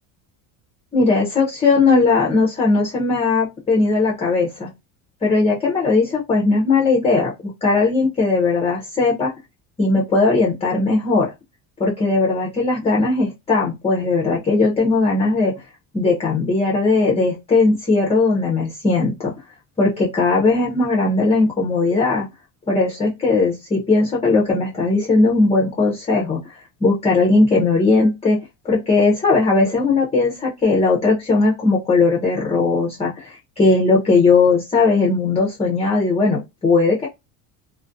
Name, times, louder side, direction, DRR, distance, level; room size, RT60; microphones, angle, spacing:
voice 1, 0.9-4.7 5.2-9.3 9.8-11.3 11.8-15.5 15.9-19.3 19.8-22.2 22.7-28.4 28.6-37.1, left 3 dB, 15° left, -2 dB, 0.5 m, -18 dB
2.4 x 2.2 x 2.4 m, 0.22 s
cardioid pair, 120°, 46 cm